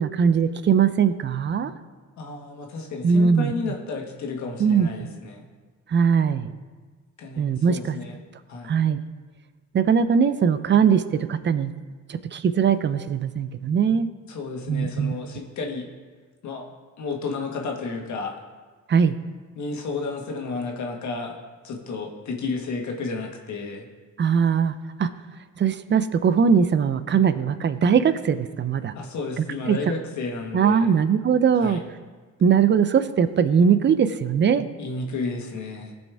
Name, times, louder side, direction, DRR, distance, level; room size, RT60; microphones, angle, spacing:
voice 1, 0.0-1.7 3.0-3.5 4.6-4.9 5.9-6.5 7.4-8.0 8.7-9.0 9.7-11.7 12.1-14.1 14.7-15.1 18.9-19.2 24.2-25.1 25.6-28.9 29.7-29.8 30.5-31.8 32.4-34.7, right 6 dB, 40° right, 13 dB, 0.6 m, -20 dB
voice 2, 2.2-5.5 7.2-8.1 8.5-8.8 14.3-15.9 16.4-16.7 17.0-18.3 19.5-21.3 21.6-23.9 28.9-30.9 31.6-31.8 34.8-35.9, left 3 dB, 70° left, 1 dB, 1.5 m, -32 dB
16.0 x 5.3 x 3.4 m, 1.4 s
cardioid pair, 90°, 30 cm